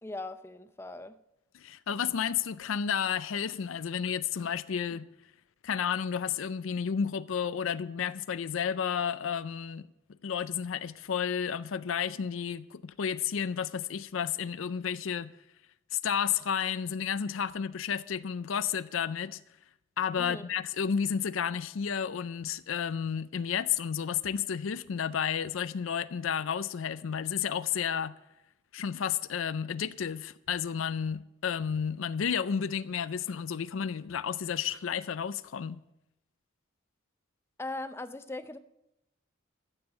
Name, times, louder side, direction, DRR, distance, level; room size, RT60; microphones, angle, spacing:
voice 1, 0.0-1.2 20.2-20.5 37.6-38.6, left 2 dB, 10° left, 0.5 m, -39 dB
voice 2, 1.5-5.1 5.6-9.9 10.2-15.3 15.9-19.4 20.0-28.2 28.7-35.8, left 7 dB, 80° left, 0.5 m, -31 dB
14.0 x 7.2 x 7.7 m
head